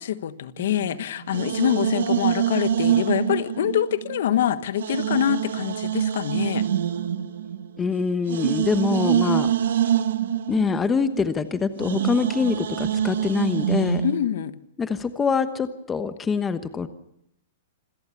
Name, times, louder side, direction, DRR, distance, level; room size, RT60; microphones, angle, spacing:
voice 1, 0.0-6.7 14.0-14.5, left 10 dB, 65° left, 13 dB, 1.4 m, -25 dB
sound 1, 0.6-4.3 4.8-14.2, right 9 dB, 80° right, 1.5 m, -25 dB
voice 2, 7.8-9.5 10.5-14.1 14.8-16.9, left 5 dB, 10° left, 11 dB, 1.1 m, -24 dB
26.5 x 17.5 x 6.9 m, 0.80 s
hypercardioid pair, 160°, 0 cm